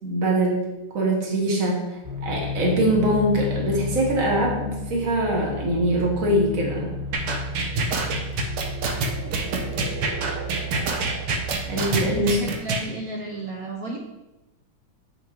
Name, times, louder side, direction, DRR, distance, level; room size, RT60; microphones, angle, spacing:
voice 1, 0.0-6.9 11.7-12.4, right 1 dB, 40° right, -2 dB, 1.8 m, -23 dB
sound 1, 2.0-12.2, left 1 dB, 15° right, 0.9 m, -32 dB
sound 2, 7.1-12.8, right 3 dB, 90° right, 1.8 m, -26 dB
voice 2, 8.2-8.6 9.1-9.3 11.9-14.0, right 2 dB, 60° right, -1 dB, 1.0 m, -35 dB
7.5 x 6.4 x 3.1 m, 1.0 s
omnidirectional pair, 2.4 m